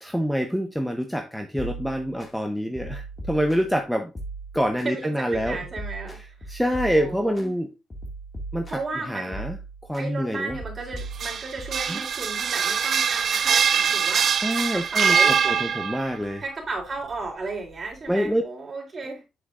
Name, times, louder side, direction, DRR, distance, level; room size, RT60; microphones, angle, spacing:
voice 1, 0.0-4.1 4.5-5.6 6.2-7.7 8.5-8.7 9.1-9.6 9.9-10.6 11.9-12.0 14.4-16.4 18.1-18.4, equal, ahead, 5 dB, 0.8 m, -26 dB
sound 1, 1.6-2.3 2.7-3.8 4.2-4.9 5.3-7.5 7.9-9.0 9.3-10.1 10.5-11.9, right 2 dB, 25° left, 2.0 m, -38 dB
voice 2, 4.8-6.5 6.9-7.5 8.7-9.4 10.0-15.4 16.4-19.2, right 3 dB, 35° right, -2 dB, 3.5 m, -34 dB
sound 2, 11.0-16.1, right 7 dB, 55° right, 0.5 m, -23 dB
7.6 x 6.5 x 2.5 m, 0.26 s
cardioid pair, 90°, 0 cm